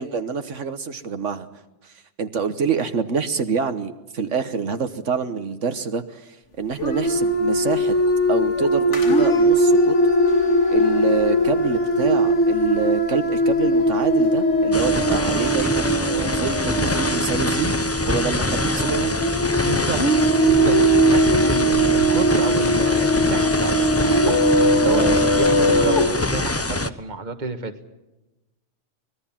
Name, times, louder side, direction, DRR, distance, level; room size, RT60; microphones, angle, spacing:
voice 1, 0.0-1.5 1.8-7.9 8.3-9.9 10.7-17.7 18.1-19.2 24.8-25.2, right 5 dB, 75° right, 9 dB, 1.5 m, -26 dB
sound 1, 6.8-26.1, equal, 70° left, 2.6 m, -20 dB
sound 2, 14.7-26.9, left 2 dB, 15° left, 0.6 m, -25 dB
voice 2, 19.6-23.7 24.0-27.7, right 3 dB, 40° right, 8 dB, 1.7 m, -30 dB
24.5 x 20.0 x 7.4 m, 1.0 s
omnidirectional pair, 1.3 m